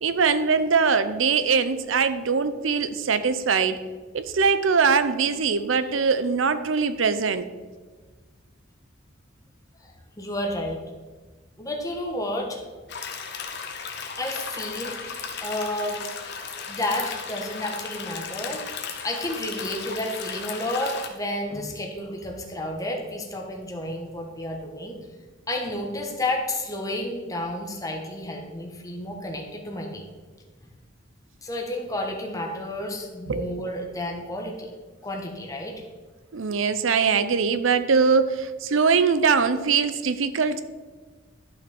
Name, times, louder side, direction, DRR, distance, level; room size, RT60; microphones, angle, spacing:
voice 1, 0.0-3.8 4.1-7.5 33.3-33.6 36.3-40.6, right 5 dB, 80° right, 12 dB, 0.6 m, -22 dB
voice 2, 9.8-10.8 11.6-12.6 14.2-16.0 16.7-18.6 19.0-25.0 25.5-30.1 31.4-34.7 35.0-35.7, left 1 dB, 15° left, 1 dB, 1.4 m, -31 dB
sound 1, 12.9-21.1, left 6 dB, 60° left, 1.2 m, -35 dB
12.0 x 5.8 x 4.4 m, 1.4 s
head